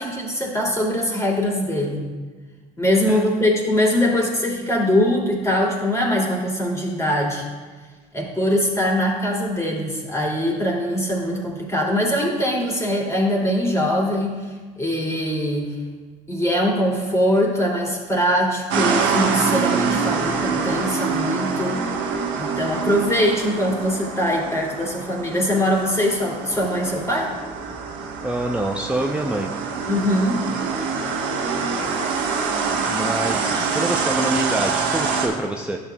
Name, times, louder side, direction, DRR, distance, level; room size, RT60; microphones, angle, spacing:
voice 1, 0.0-2.1 2.8-7.4 8.1-14.5 14.8-15.7 16.3-21.8 22.3-27.3 29.9-30.5, equal, 15° left, -2 dB, 2.6 m, -22 dB
sound 1, 18.7-35.3, right 5 dB, 70° right, 1.2 m, -25 dB
voice 2, 28.2-29.5 32.9-35.8, right 1 dB, 5° right, 1 dB, 0.6 m, -26 dB
12.0 x 6.9 x 2.3 m, 1.4 s
hypercardioid pair, 65°, 20 cm